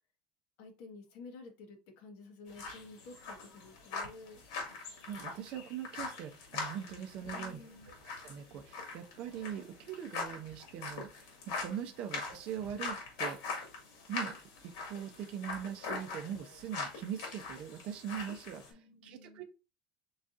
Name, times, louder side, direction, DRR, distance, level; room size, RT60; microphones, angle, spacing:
voice 1, 0.6-4.4 7.2-8.0 11.8-11.9 18.7-19.4, left 3 dB, 60° left, 3 dB, 1.3 m, -52 dB
sound 1, 2.5-18.7, left 4 dB, 80° left, 1.9 m, -42 dB
voice 2, 5.1-7.6 7.8-7.9 8.2-13.6 14.1-14.3 14.6-19.4, right 9 dB, 45° right, 5 dB, 0.6 m, -42 dB
4.7 x 4.0 x 2.5 m, 0.31 s
cardioid pair, 165°, 2 cm